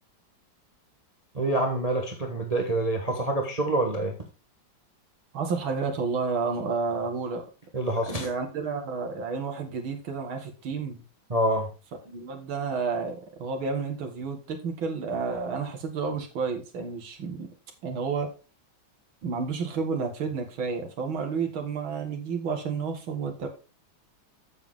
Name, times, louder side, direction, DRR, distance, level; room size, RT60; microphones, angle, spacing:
voice 1, 1.3-4.2 7.7-8.3 11.3-11.7, right 1 dB, 25° right, 2 dB, 1.1 m, -26 dB
voice 2, 5.3-7.4 8.1-11.0 12.1-17.5 17.8-18.3 19.2-23.5, right 5 dB, 85° right, 4 dB, 2.5 m, -31 dB
8.1 x 7.3 x 3.7 m, 0.32 s
omnidirectional pair, 2.2 m